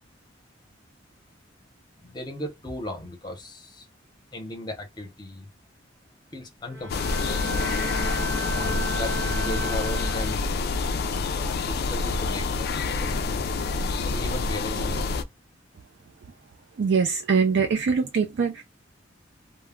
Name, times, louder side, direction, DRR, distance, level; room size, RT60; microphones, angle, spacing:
voice 1, 2.0-3.9 4.3-5.5 6.3-7.5 8.5-10.5 11.6-13.2 14.0-15.2, left 1 dB, 20° left, 0.7 m, -36 dB
Bowed string instrument, 6.7-10.7, equal, 10° right, 0.8 m, -34 dB
sound 1, 6.9-15.2, left 4 dB, 50° left, 0.3 m, -27 dB
voice 2, 16.8-18.6, right 5 dB, 60° right, 0.4 m, -23 dB
2.2 x 2.0 x 3.5 m
head